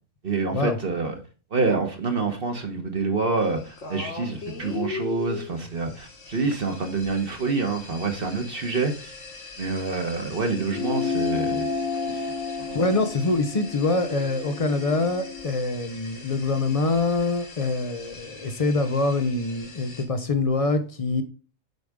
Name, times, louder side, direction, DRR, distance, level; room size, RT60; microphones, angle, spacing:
voice 1, 0.2-1.2 1.5-9.1 9.6-11.7 12.6-12.8, right 4 dB, 45° right, 1.2 m, -27 dB
sound 1, 3.4-20.0, left 4 dB, 60° left, 1.7 m, -41 dB
sound 2, 10.7-15.5, left 5 dB, 80° left, 1.3 m, -31 dB
voice 2, 12.7-21.2, left 3 dB, 45° left, 0.4 m, -25 dB
8.0 x 5.0 x 3.5 m
omnidirectional pair, 1.5 m